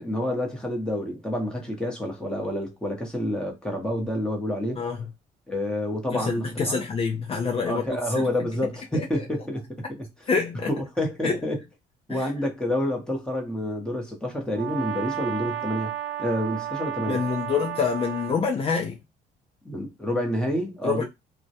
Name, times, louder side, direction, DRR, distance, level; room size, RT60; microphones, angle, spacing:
voice 1, 0.0-4.8 5.5-6.5 7.7-10.1 10.7-11.6 12.1-15.9 16.2-17.2 19.6-21.0, left 1 dB, 5° left, 0.9 m, -28 dB
voice 2, 6.1-8.5 8.9-9.2 10.3-10.7 11.2-11.4 12.1-12.3 17.1-19.0 20.8-21.0, left 5 dB, 35° left, 0.5 m, -27 dB
Brass instrument, 14.5-18.4, right 12 dB, 70° right, 0.5 m, -32 dB
2.2 x 2.1 x 2.7 m
cardioid pair, 110°, 17 cm